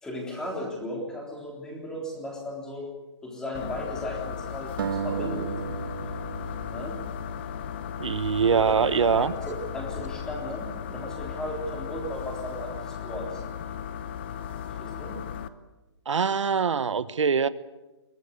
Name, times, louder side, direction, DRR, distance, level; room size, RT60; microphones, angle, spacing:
voice 1, 0.0-2.9 3.2-5.5 6.7-7.0 8.5-13.4 14.8-15.2, left 1 dB, 5° left, 0 dB, 3.6 m, -36 dB
sound 1, 3.5-10.6, left 4 dB, 50° left, 3.4 m, -50 dB
sound 2, 3.5-15.5, left 8 dB, 20° left, 0.8 m, -36 dB
sound 3, 4.8-8.0, right 7 dB, 45° right, 1.3 m, -34 dB
voice 2, 8.0-9.3 16.1-17.5, right 6 dB, 90° right, 14 dB, 1.2 m, -23 dB
23.0 x 20.0 x 8.3 m, 1.1 s
hypercardioid pair, 170°, 15 cm